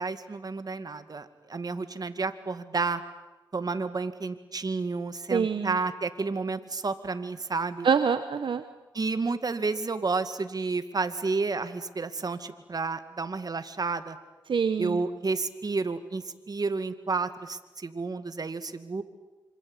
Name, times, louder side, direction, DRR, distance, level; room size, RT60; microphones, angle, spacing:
voice 1, 0.0-3.0 3.5-7.9 8.9-14.2 14.8-19.0, right 4 dB, 50° right, 10 dB, 2.2 m, -31 dB
voice 2, 5.3-5.8 7.8-8.6 14.5-15.0, right 6 dB, 70° right, 10 dB, 1.2 m, -25 dB
26.5 x 25.5 x 8.3 m, 1.1 s
cardioid pair, 55°, 9 cm